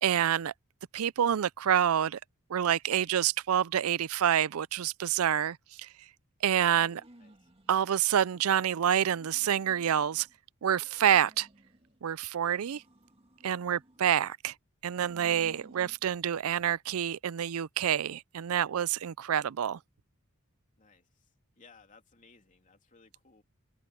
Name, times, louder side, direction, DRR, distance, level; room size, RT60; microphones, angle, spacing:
voice 1, 0.0-0.5 0.9-2.2 2.5-5.9 6.4-7.0 7.7-10.3 10.6-11.5 12.0-12.8 13.4-14.5 14.8-19.8, right 9 dB, 80° right, 0.4 m, -27 dB
sound 1, 6.6-7.9 8.3-10.4 10.7-12.0 12.4-14.3 14.8-16.0, right 1 dB, 25° right, 2.1 m, -58 dB
voice 2, 7.1-7.5 20.8-21.3 21.6-23.4, left 4 dB, 35° left, 3.3 m, -60 dB
open air
head